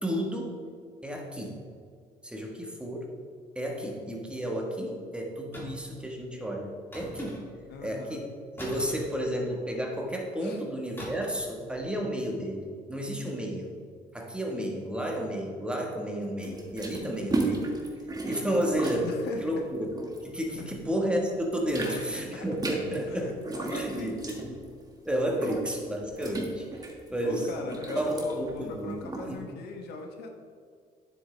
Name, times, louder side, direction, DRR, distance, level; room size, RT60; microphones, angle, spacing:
voice 1, 0.0-0.6 1.0-1.6 2.2-3.0 3.5-7.4 7.8-8.3 8.6-13.7 14.1-17.7 18.3-19.1 19.4-19.9 20.2-23.3 23.6-24.5 25.0-29.0 29.2-29.5, equal, 5° right, 0 dB, 1.4 m, -32 dB
sound 1, 5.5-6.0 6.9-7.7 8.6-9.8 11.0-11.5 11.7-12.0, equal, 15° left, 2.2 m, -42 dB
voice 2, 7.7-8.2 10.4-10.6 19.0-19.6 20.6-20.7 21.8-22.5 23.1-24.4 27.2-30.3, left 3 dB, 75° left, 3 dB, 1.2 m, -39 dB
sound 2, 16.4-21.0 21.3-29.3, right 2 dB, 20° right, 1.6 m, -35 dB
9.4 x 7.8 x 3.4 m, 2.1 s
cardioid pair, 110°, 17 cm